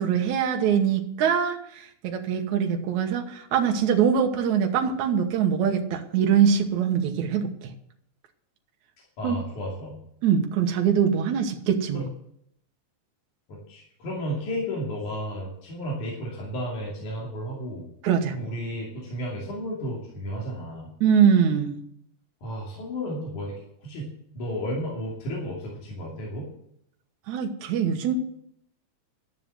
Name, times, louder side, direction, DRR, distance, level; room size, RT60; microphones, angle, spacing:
voice 1, 0.0-7.7 9.2-9.4 10.2-12.1 18.0-18.4 21.0-21.8 27.3-28.1, right 7 dB, 70° right, 3 dB, 2.5 m, -23 dB
voice 2, 9.2-10.0 11.9-12.0 13.5-17.9 18.4-20.9 22.4-23.5 23.8-24.1 24.3-26.5, equal, 75° left, -4 dB, 4.3 m, -33 dB
12.5 x 7.5 x 7.5 m, 0.72 s
omnidirectional pair, 3.5 m